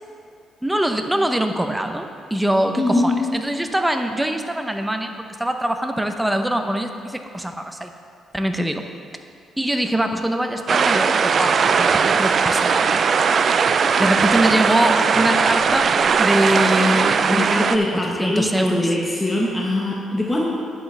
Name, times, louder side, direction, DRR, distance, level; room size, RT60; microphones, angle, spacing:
voice 1, 0.6-5.1 5.4-7.9 8.3-8.8 9.6-12.9 14.0-15.9 16.2-18.9, right 1 dB, 5° right, 5 dB, 0.7 m, -23 dB
voice 2, 2.8-3.2 17.3-20.5, left 1 dB, 15° left, -3 dB, 1.2 m, -22 dB
sound 1, 10.7-17.8, right 6 dB, 50° right, 0.3 m, -18 dB
10.5 x 8.1 x 3.4 m, 2.4 s
cardioid pair, 90°, 0 cm